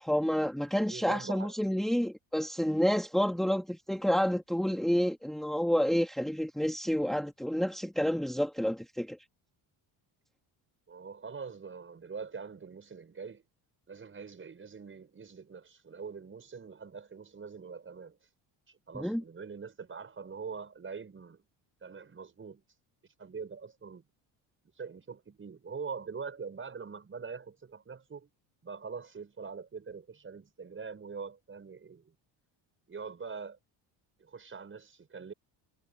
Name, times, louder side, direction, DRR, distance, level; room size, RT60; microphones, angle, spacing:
voice 1, 0.0-9.2 18.9-19.2, equal, ahead, 2.3 m, -29 dB
voice 2, 0.7-1.5 10.9-13.4 13.9-18.2 18.7-21.5 21.8-22.6 23.2-24.1 24.8-28.3 28.6-32.2 32.9-33.6 34.2-35.3, right 5 dB, 30° right, 6.1 m, -43 dB
cardioid pair, 120°, 44 cm